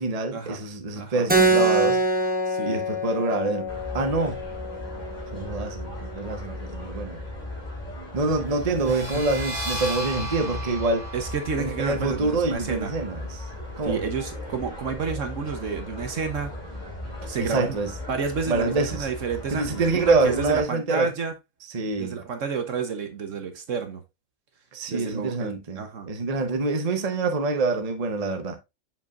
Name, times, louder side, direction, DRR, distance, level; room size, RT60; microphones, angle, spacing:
voice 1, 0.0-2.0 2.6-4.4 5.3-7.2 8.1-11.1 11.6-13.4 13.8-14.0 17.4-17.9 18.5-19.0 19.5-21.1 21.7-22.2 24.7-28.6, right 3 dB, 30° right, 0.9 m, -26 dB
voice 2, 0.9-1.3 2.5-2.8 8.9-9.2 11.1-12.9 13.8-16.5 17.3-17.8 18.1-21.3 22.0-24.0 24.9-26.1, right 5 dB, 60° right, 1.3 m, -30 dB
Keyboard (musical), 1.3-6.4, right 2 dB, 15° right, 0.4 m, -25 dB
sound 1, 3.7-20.6, left 1 dB, 30° left, 2.8 m, -37 dB
sound 2, 8.7-14.1, right 1 dB, 10° left, 4.6 m, -36 dB
7.2 x 5.6 x 2.5 m
omnidirectional pair, 1.6 m